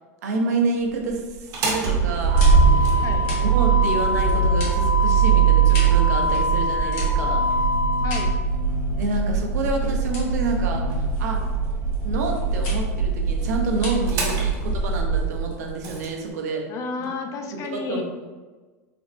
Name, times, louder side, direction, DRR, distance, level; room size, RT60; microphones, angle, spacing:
voice 1, 0.2-2.8 3.4-7.4 8.9-11.4 12.0-16.7 17.0-17.1 17.5-18.0, right 3 dB, 80° right, 2 dB, 0.5 m, -28 dB
Motor vehicle (road), 1.4-16.1, right 4 dB, 40° right, 0.7 m, -21 dB
sound 1, 2.0-16.5, left 2 dB, 55° left, 1.2 m, -41 dB
voice 2, 8.0-8.3 14.0-14.4 16.7-18.0, left 4 dB, 40° left, 5 dB, 0.3 m, -32 dB
3.3 x 2.0 x 2.5 m, 1.3 s
supercardioid pair, 120°, 9 cm